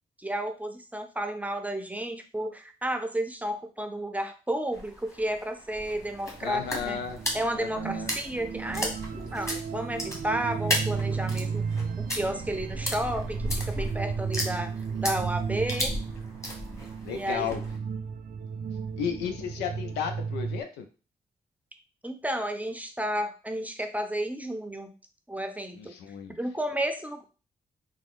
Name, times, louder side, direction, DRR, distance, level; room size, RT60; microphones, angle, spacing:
voice 1, 0.2-7.0 7.3-11.6 12.0-14.7 15.0-15.9 17.1-17.5 22.0-24.9 25.3-25.9 26.3-27.2, right 1 dB, 10° right, 7 dB, 0.6 m, -32 dB
sound 1, 4.7-17.8, left 1 dB, 15° left, 1.4 m, -35 dB
sound 2, 6.0-20.6, right 6 dB, 55° right, 0.4 m, -34 dB
voice 2, 6.4-7.2 7.5-8.1 17.0-17.6 19.0-20.9 25.7-26.4, left 7 dB, 85° left, 6 dB, 0.5 m, -33 dB
3.4 x 2.1 x 3.6 m, 0.35 s
supercardioid pair, 40°, 17 cm